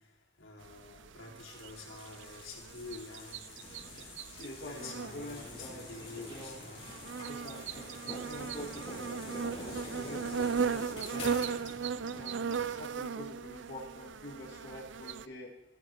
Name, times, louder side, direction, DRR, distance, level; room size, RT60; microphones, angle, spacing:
voice 1, 0.4-3.4 3.8-4.2 4.7-6.8, left 3 dB, 85° left, -3 dB, 4.3 m, -48 dB
sound 1, 0.6-15.3, right 6 dB, 70° right, 0.5 m, -37 dB
sound 2, 1.4-11.8, left 2 dB, 30° left, 4.0 m, -47 dB
voice 2, 4.3-6.6 7.2-11.6 12.0-15.5, left 1 dB, 55° left, -4 dB, 2.4 m, -46 dB
sound 3, 4.8-12.8, equal, 30° right, 5.3 m, -53 dB
17.0 x 13.5 x 4.6 m, 1.0 s
head